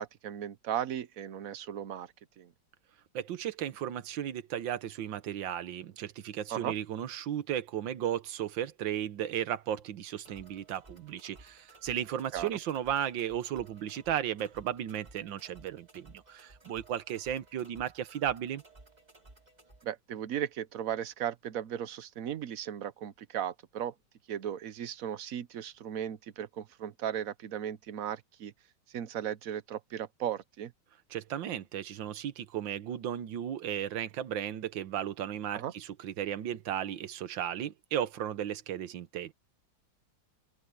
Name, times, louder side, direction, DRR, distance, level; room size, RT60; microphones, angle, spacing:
voice 1, 0.0-2.5 6.5-6.7 12.3-12.5 19.8-23.9 24.3-28.5 28.9-30.7 35.5-35.7, right 10 dB, 60° right, 1.1 m, -36 dB
voice 2, 3.1-18.6 31.1-39.3, right 10 dB, 90° right, 1.7 m, -35 dB
sound 1, 10.2-19.8, right 2 dB, 20° right, 2.7 m, -57 dB
open air
omnidirectional pair, 2.0 m